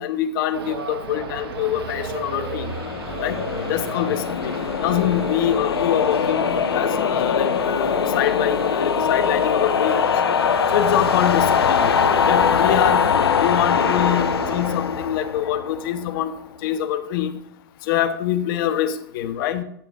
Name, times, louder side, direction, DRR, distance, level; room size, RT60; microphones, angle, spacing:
voice 1, 0.0-2.7 3.2-3.4 3.7-4.6 4.8-10.1 10.7-12.0 12.3-16.3 16.6-17.4 17.8-19.6, left 10 dB, 60° left, 10 dB, 1.1 m, -24 dB
sound 1, 0.5-14.8, right 5 dB, 75° right, 1.5 m, -35 dB
sound 2, 1.9-16.2, left 7 dB, 85° left, 0.7 m, -22 dB
13.5 x 8.8 x 2.6 m, 0.69 s
hypercardioid pair, 100°, 13 cm